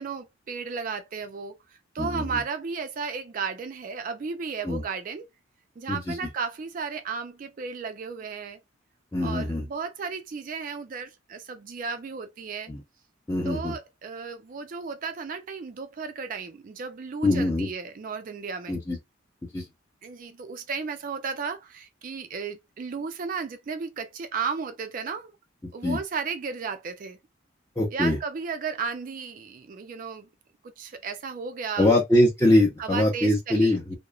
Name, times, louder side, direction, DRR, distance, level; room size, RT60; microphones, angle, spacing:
voice 1, 0.0-1.6 1.9-5.3 5.8-8.6 9.2-12.7 13.5-18.8 20.0-25.3 25.7-27.2 27.9-30.3 30.6-31.9 32.8-33.8, right 5 dB, 45° right, 0.3 m, -34 dB
voice 2, 9.1-9.6 12.7-12.8 13.3-13.7 17.2-17.7 18.7-19.0 19.5-19.7 25.6-26.0 27.8-28.2 31.8-34.0, left 1 dB, 15° left, 0.5 m, -23 dB
2.9 x 2.0 x 2.3 m
head